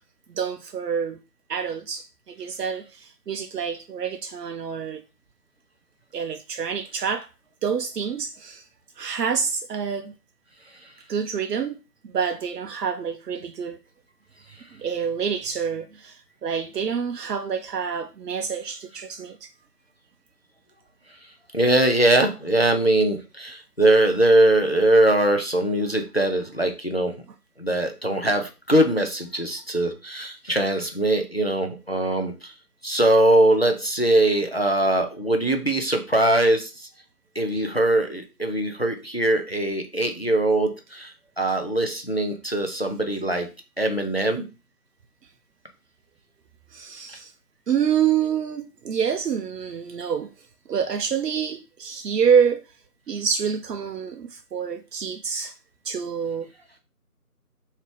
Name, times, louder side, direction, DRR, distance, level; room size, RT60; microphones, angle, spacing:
voice 1, 0.3-1.2 1.5-5.0 6.1-7.3 7.6-8.7 9.0-10.1 11.1-11.8 12.0-13.8 14.7-19.5 37.6-37.7 46.7-47.3 47.7-50.3 50.7-52.6 53.1-55.6 55.8-56.5, right 7 dB, 80° right, 0.6 m, -27 dB
voice 2, 21.5-27.1 27.6-32.5 32.8-36.9 37.4-43.5 43.8-44.4, right 1 dB, 40° left, 0.5 m, -21 dB
3.3 x 2.8 x 3.2 m
figure-of-eight pair, 170°, 47 cm